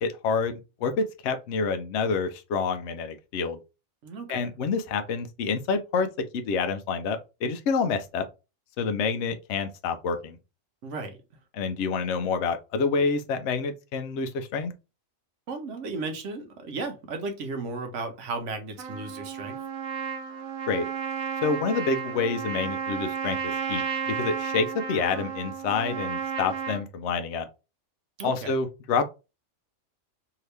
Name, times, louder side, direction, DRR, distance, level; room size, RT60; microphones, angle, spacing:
voice 1, 0.0-3.6 4.3-6.1 6.3-8.3 8.8-10.4 11.5-14.7 20.7-20.9 21.4-27.5 28.2-29.0, left 4 dB, 65° left, 0.8 m, -28 dB
voice 2, 4.0-4.4 10.8-11.2 15.5-19.6 28.2-28.5, right 3 dB, 70° right, 1.0 m, -35 dB
Trumpet, 18.8-26.8, right 6 dB, 90° right, 1.1 m, -32 dB
2.8 x 2.8 x 3.2 m
omnidirectional pair, 1.4 m